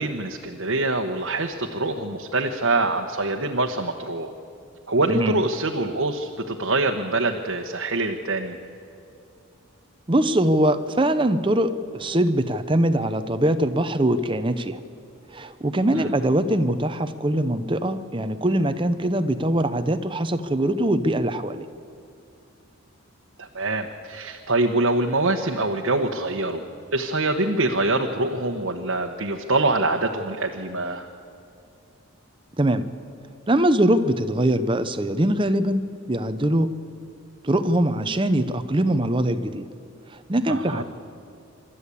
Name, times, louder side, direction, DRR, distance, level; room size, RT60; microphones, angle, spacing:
voice 1, 0.0-4.3 4.9-8.6 15.9-16.1 23.4-26.6 26.9-31.0 40.5-40.8, right 2 dB, 70° right, 2 dB, 1.1 m, -24 dB
voice 2, 10.1-14.8 15.3-21.6 32.6-32.8 33.5-35.8 36.1-36.7 37.4-39.6 40.3-40.8, right 1 dB, 25° right, 11 dB, 0.7 m, -22 dB
26.5 x 13.0 x 8.5 m, 2.6 s
head